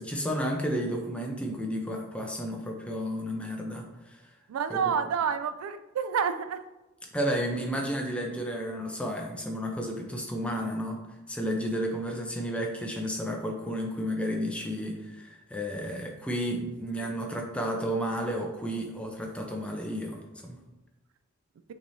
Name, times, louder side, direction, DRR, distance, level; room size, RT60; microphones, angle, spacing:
voice 1, 0.0-4.3 4.7-4.8 7.1-11.0 11.3-20.6, equal, 5° left, 1 dB, 0.5 m, -32 dB
voice 2, 4.5-6.6 17.0-17.1, right 7 dB, 85° right, 11 dB, 0.3 m, -29 dB
5.9 x 3.1 x 2.7 m, 1.1 s
head